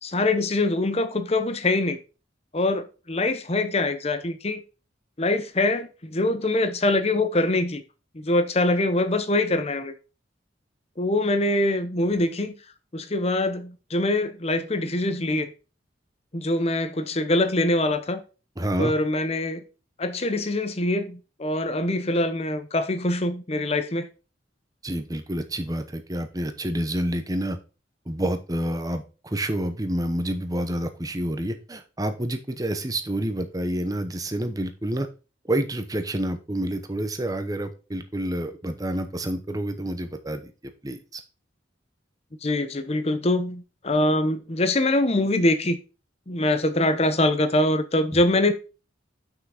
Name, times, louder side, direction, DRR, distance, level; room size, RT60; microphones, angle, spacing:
voice 1, 0.0-2.0 2.5-4.6 5.2-7.8 8.1-9.9 11.0-12.5 12.9-15.5 16.3-18.2 18.8-19.6 20.0-24.1 42.4-45.8 46.3-48.5, left 2 dB, 35° left, 0.8 m, -24 dB
voice 2, 18.6-18.9 24.8-27.6 28.1-35.1 35.5-40.4 40.8-41.2 48.1-48.2, right 1 dB, 20° right, 0.9 m, -28 dB
6.0 x 5.9 x 4.9 m
head